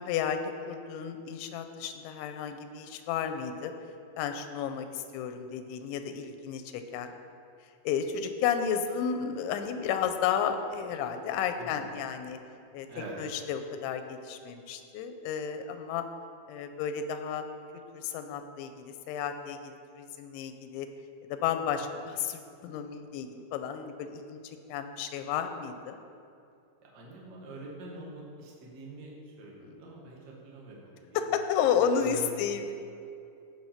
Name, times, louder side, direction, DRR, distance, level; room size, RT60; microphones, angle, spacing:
voice 1, 0.0-3.7 4.2-7.1 7.8-12.4 12.7-12.9 13.2-16.0 16.5-17.4 17.9-20.9 21.2-26.0 29.6-29.8 31.1-32.7, left 7 dB, 90° left, 8 dB, 3.1 m, -32 dB
voice 2, 26.8-31.3 32.0-32.2, right 1 dB, 70° right, -3 dB, 0.9 m, -45 dB
16.5 x 6.0 x 5.8 m, 2.6 s
omnidirectional pair, 5.2 m